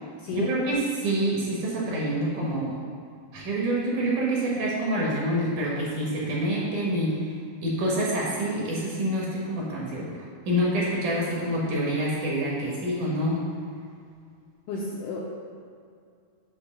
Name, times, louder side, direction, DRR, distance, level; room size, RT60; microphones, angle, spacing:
voice 1, 0.3-2.8 3.3-7.2 7.6-10.2 10.5-13.4, right 1 dB, 65° right, -5 dB, 2.3 m, -27 dB
voice 2, 14.7-15.3, left 3 dB, 85° left, -5 dB, 1.8 m, -32 dB
8.5 x 3.1 x 6.4 m, 2.3 s
omnidirectional pair, 4.5 m